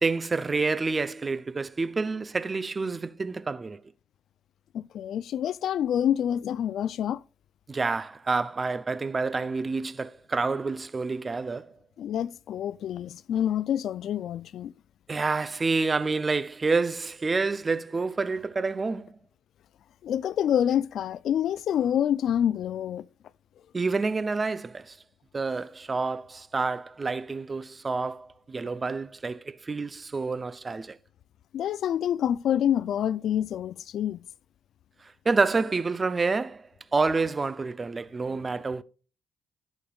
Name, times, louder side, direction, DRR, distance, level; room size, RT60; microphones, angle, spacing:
voice 1, 0.0-3.8 7.7-11.7 15.1-19.2 23.7-25.0 25.3-31.0 35.3-38.8, right 4 dB, 30° right, 0.5 m, -28 dB
voice 2, 4.7-7.2 12.0-14.7 20.0-23.0 31.5-34.2, left 10 dB, 70° left, 0.3 m, -27 dB
15.0 x 5.1 x 2.3 m
cardioid pair, 90°, 0 cm